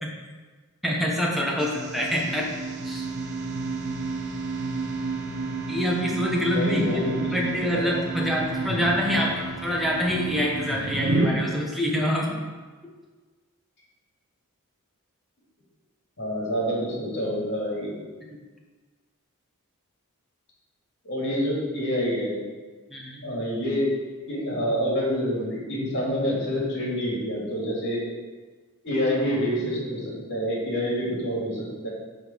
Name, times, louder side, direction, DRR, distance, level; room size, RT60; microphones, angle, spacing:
voice 1, 0.8-2.5 2.8-3.0 5.7-12.4 12.8-12.9 22.9-23.2, equal, ahead, -2 dB, 1.2 m, -26 dB
sound 1, 1.6-11.3, right 3 dB, 50° right, 0.9 m, -31 dB
voice 2, 6.5-7.5 7.7-8.0 16.2-17.9 21.0-22.4 23.2-23.9 24.3-28.0 28.8-31.9, equal, 55° left, -4 dB, 2.7 m, -27 dB
9.1 x 3.9 x 6.3 m, 1.4 s
head